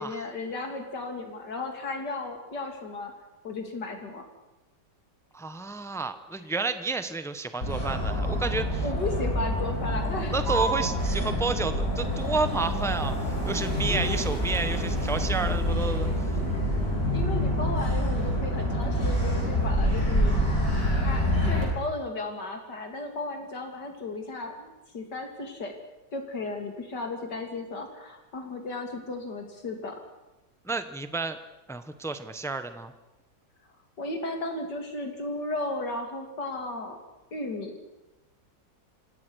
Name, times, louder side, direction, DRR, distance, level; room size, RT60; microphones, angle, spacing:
voice 1, 0.0-3.1 3.4-4.2 8.8-10.4 13.9-14.3 17.1-20.4 21.0-25.7 26.1-30.0 34.0-37.0 37.3-37.8, left 2 dB, 75° left, 4 dB, 3.6 m, -34 dB
voice 2, 5.3-8.8 10.3-16.3 30.6-31.4 31.7-32.9, right 3 dB, ahead, 10 dB, 0.8 m, -31 dB
Motor vehicle (road), 7.6-21.6, equal, 50° left, 8.5 m, -27 dB
27.0 x 17.0 x 6.4 m, 1.0 s
omnidirectional pair, 1.8 m